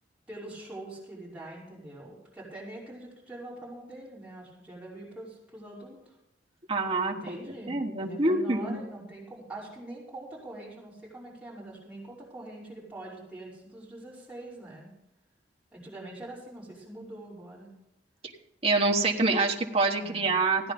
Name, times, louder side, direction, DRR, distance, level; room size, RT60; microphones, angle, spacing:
voice 1, 0.3-6.2 7.1-14.9 15.7-17.7 20.0-20.4, right 1 dB, 5° right, -7 dB, 5.3 m, -44 dB
voice 2, 6.7-7.4 7.7-8.8 18.6-20.7, right 3 dB, 35° right, 0 dB, 1.2 m, -26 dB
15.5 x 9.8 x 5.3 m, 0.84 s
head